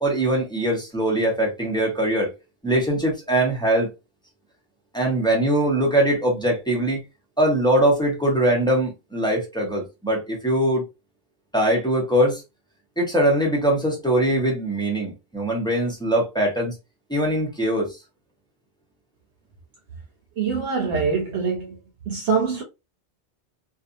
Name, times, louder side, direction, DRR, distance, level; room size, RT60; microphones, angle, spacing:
voice 1, 0.0-2.3 2.6-3.9 4.9-7.0 7.4-10.8 11.5-12.4 13.0-16.7 17.1-18.0, right 1 dB, 5° left, 0.8 m, -22 dB
voice 2, 20.4-21.8 22.1-22.6, right 5 dB, 80° right, 1.0 m, -24 dB
2.6 x 2.3 x 2.5 m
omnidirectional pair, 1.2 m